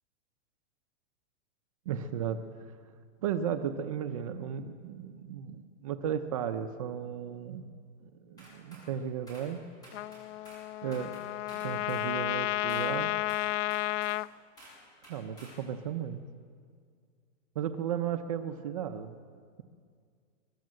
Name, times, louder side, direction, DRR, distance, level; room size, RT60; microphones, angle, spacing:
voice 1, 1.9-2.4 3.2-7.6 8.0-9.6 10.8-11.2 11.5-13.1 15.1-16.2 17.6-19.2, right 8 dB, 30° right, 8 dB, 0.6 m, -35 dB
sound 1, 8.4-8.9 9.3-9.5 9.8-10.7 10.9-12.1 12.7-12.9 13.3-14.2 14.6-14.8 15.0-15.6, equal, 10° left, 7.4 m, -52 dB
Trumpet, 9.9-14.3, left 15 dB, 75° left, 0.5 m, -32 dB
23.5 x 21.5 x 7.6 m, 2.1 s
supercardioid pair, 180°, 38 cm